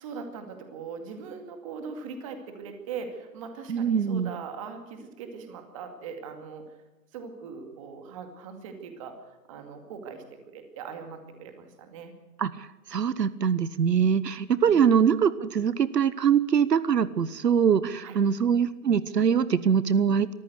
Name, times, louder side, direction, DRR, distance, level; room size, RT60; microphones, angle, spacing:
voice 1, 0.0-6.6 7.1-12.1 14.6-14.8 18.0-18.2, right 5 dB, 20° right, 6 dB, 2.3 m, -40 dB
voice 2, 3.7-4.3 12.4-20.3, right 7 dB, 80° right, 17 dB, 1.2 m, -23 dB
24.0 x 14.5 x 8.0 m, 1.1 s
hypercardioid pair, 165°, 48 cm